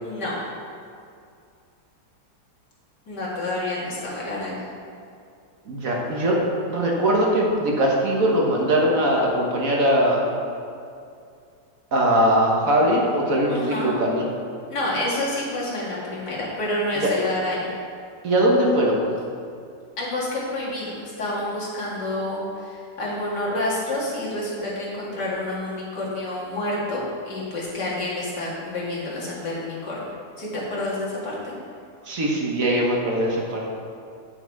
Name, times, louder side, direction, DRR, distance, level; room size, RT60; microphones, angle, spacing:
voice 1, 0.0-0.4 3.1-4.6 13.5-14.0 14.7-17.7 20.0-31.5, left 1 dB, 75° left, -6 dB, 2.5 m, -28 dB
voice 2, 5.7-6.4 6.7-10.3 11.9-14.2 17.0-17.1 18.2-19.1 32.1-33.7, right 1 dB, 55° right, -1 dB, 1.5 m, -21 dB
8.6 x 6.3 x 4.6 m, 2.4 s
omnidirectional pair, 1.8 m